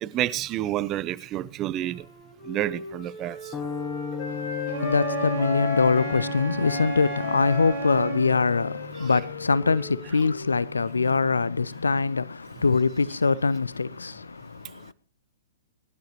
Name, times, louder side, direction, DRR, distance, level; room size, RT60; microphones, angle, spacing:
voice 1, 0.0-2.0 2.4-3.4 9.0-9.1, right 13 dB, 30° right, 0.7 m, -29 dB
Wind instrument woodwind instrument, 1.8-6.3 6.6-11.1, left 7 dB, 55° left, 5.4 m, -36 dB
sound 1, 3.5-11.9, left 5 dB, 15° left, 1.2 m, -38 dB
voice 2, 4.3-14.9, left 4 dB, 80° left, 0.5 m, -24 dB
Wind instrument woodwind instrument 2, 4.7-8.2, right 3 dB, 50° right, 3.6 m, -32 dB
21.5 x 11.5 x 3.0 m
figure-of-eight pair, 115°, 0 cm